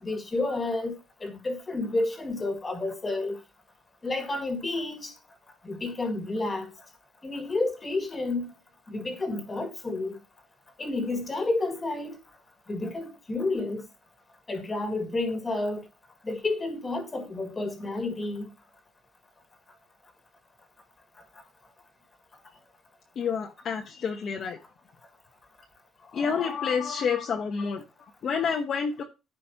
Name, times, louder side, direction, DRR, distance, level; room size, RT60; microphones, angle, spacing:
voice 1, 0.0-3.4 4.0-5.1 5.6-6.7 7.2-8.5 8.9-10.1 10.8-12.2 12.7-13.8 14.5-15.8 16.2-18.5, left 2 dB, 20° left, 1.9 m, -30 dB
voice 2, 23.2-24.6 26.0-29.0, left 6 dB, 40° left, 1.0 m, -29 dB
14.0 x 5.1 x 2.8 m
cardioid pair, 155°, 0 cm